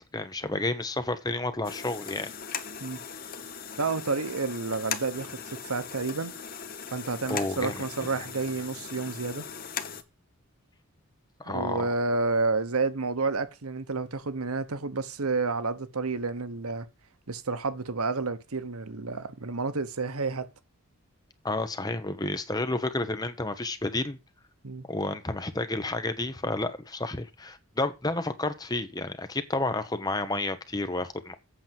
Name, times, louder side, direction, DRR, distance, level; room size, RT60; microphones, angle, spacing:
voice 1, 0.1-2.3 7.3-7.8 11.4-11.9 21.4-24.2 24.9-31.3, left 2 dB, 15° left, 1.0 m, -30 dB
sound 1, 1.6-10.0, left 7 dB, 40° left, 1.0 m, -39 dB
voice 2, 3.8-6.3 6.9-9.4 11.5-16.9 17.3-20.5 24.6-24.9, right 3 dB, 85° right, 1.1 m, -30 dB
8.4 x 6.1 x 7.5 m
head